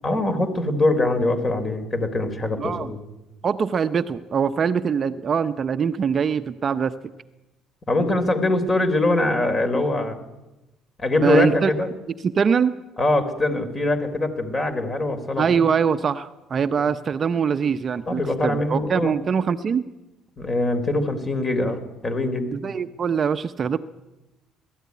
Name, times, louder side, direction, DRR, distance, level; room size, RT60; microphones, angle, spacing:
voice 1, 0.0-3.0 7.9-10.2 11.0-11.9 13.0-15.4 16.8-16.9 18.1-19.1 20.4-22.5, left 2 dB, 30° left, 8 dB, 3.8 m, -23 dB
voice 2, 2.6-2.9 3.4-6.9 11.2-11.7 12.2-12.7 15.4-19.8 22.5-23.8, right 6 dB, 40° right, 10 dB, 0.8 m, -23 dB
20.0 x 13.5 x 9.6 m, 1.0 s
cardioid pair, 95°, 0 cm